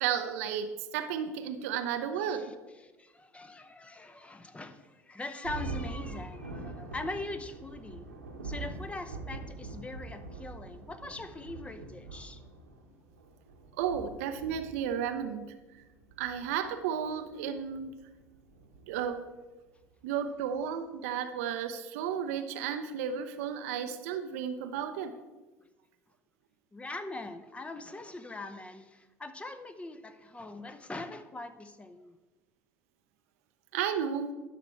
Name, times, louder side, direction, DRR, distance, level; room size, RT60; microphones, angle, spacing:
voice 1, 0.0-2.5 13.8-15.5 16.2-17.9 18.9-19.2 20.0-25.1 33.7-34.3, right 8 dB, 65° right, 9 dB, 0.6 m, -33 dB
voice 2, 2.2-2.5 2.8-8.1 8.4-12.4 26.7-32.2, left 2 dB, 15° left, 10 dB, 0.7 m, -42 dB
Thunder, 5.4-19.4, right 3 dB, 85° right, 1.2 m, -44 dB
11.0 x 6.0 x 4.3 m, 1.2 s
figure-of-eight pair, 65°, 8 cm